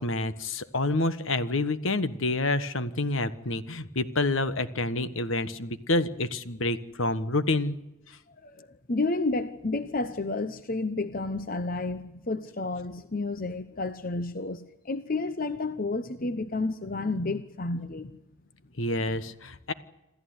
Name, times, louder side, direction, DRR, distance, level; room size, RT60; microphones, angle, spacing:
voice 1, 0.0-7.8 18.8-19.7, left 2 dB, 65° left, 12 dB, 1.4 m, -28 dB
voice 2, 8.4-18.2, left 3 dB, 40° left, 11 dB, 0.9 m, -31 dB
27.5 x 14.0 x 9.5 m, 0.96 s
head